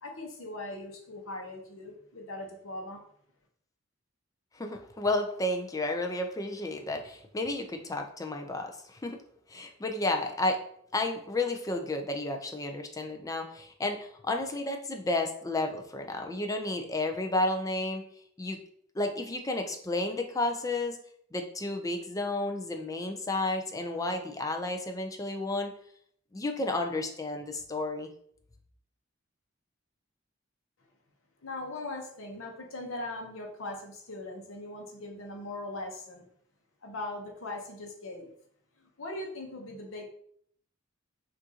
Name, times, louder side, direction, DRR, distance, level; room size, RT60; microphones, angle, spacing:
voice 1, 0.0-3.0 31.4-36.3 36.8-38.3 38.8-40.0, left 2 dB, 75° left, 1 dB, 0.9 m, -40 dB
voice 2, 4.6-9.2 9.5-10.6 10.9-18.1 18.4-18.6 18.9-21.0 21.3-25.7 26.3-28.1, left 2 dB, 15° left, 4 dB, 0.4 m, -32 dB
6.1 x 2.6 x 2.8 m, 0.65 s
head